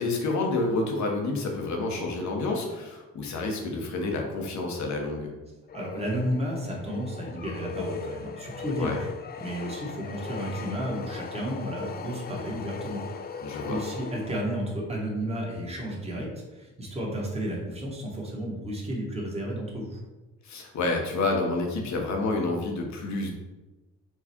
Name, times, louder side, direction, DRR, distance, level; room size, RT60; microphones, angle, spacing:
voice 1, 0.0-5.3 8.8-9.0 13.4-13.8 20.4-23.3, left 2 dB, 65° left, 2 dB, 1.1 m, -29 dB
sound 1, 5.7-14.8, left 5 dB, 35° left, 0.4 m, -38 dB
voice 2, 5.7-9.1 9.4-20.0, equal, 20° right, -3 dB, 1.3 m, -32 dB
4.7 x 2.4 x 4.3 m, 1.1 s
cardioid pair, 90°, 30 cm